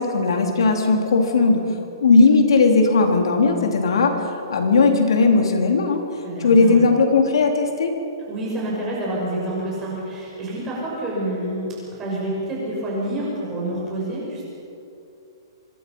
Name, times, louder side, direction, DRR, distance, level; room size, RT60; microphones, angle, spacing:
voice 1, 0.0-1.6 2.0-4.2 4.5-6.0 6.4-7.9, left 4 dB, 85° left, 3 dB, 3.7 m, -17 dB
voice 2, 6.2-6.8 8.3-14.5, right 1 dB, 15° right, -5 dB, 6.2 m, -28 dB
25.0 x 22.5 x 5.6 m, 2.7 s
hypercardioid pair, 180°, 3 cm